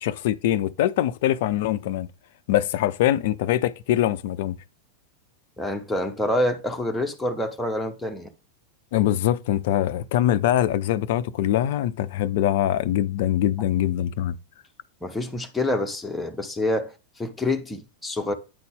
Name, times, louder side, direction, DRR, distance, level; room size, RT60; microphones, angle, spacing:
voice 1, 0.0-2.1 2.5-4.6 8.9-14.4, left 12 dB, 50° left, 0.4 m, -23 dB
voice 2, 5.6-8.3 15.0-16.9 17.2-18.3, left 1 dB, 5° left, 1.0 m, -27 dB
9.3 x 4.1 x 3.5 m
figure-of-eight pair, 90°, 0 cm